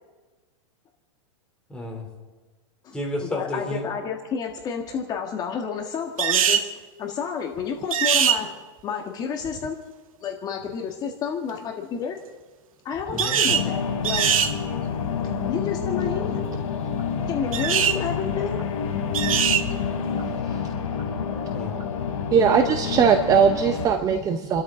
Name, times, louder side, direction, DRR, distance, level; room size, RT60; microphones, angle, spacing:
voice 1, 1.7-2.1 2.9-3.9 13.1-13.4 21.5-21.9, left 1 dB, 5° left, -1 dB, 3.2 m, -31 dB
voice 2, 3.3-6.7 7.0-8.5 8.8-9.8 10.2-12.2 12.8-14.3 15.5-16.4 17.3-18.6, left 7 dB, 25° left, 2 dB, 1.6 m, -30 dB
sound 1, 6.2-6.7 7.9-8.4 13.2-13.7 14.0-14.5 17.5-18.0 19.1-19.6, right 8 dB, 90° right, 1.6 m, -21 dB
sound 2, 13.5-23.9, left 6 dB, 80° left, 3.4 m, -28 dB
voice 3, 22.3-24.6, right 7 dB, 20° right, 7 dB, 0.8 m, -20 dB
29.5 x 12.5 x 3.8 m, 1.3 s
supercardioid pair, 155°, 17 cm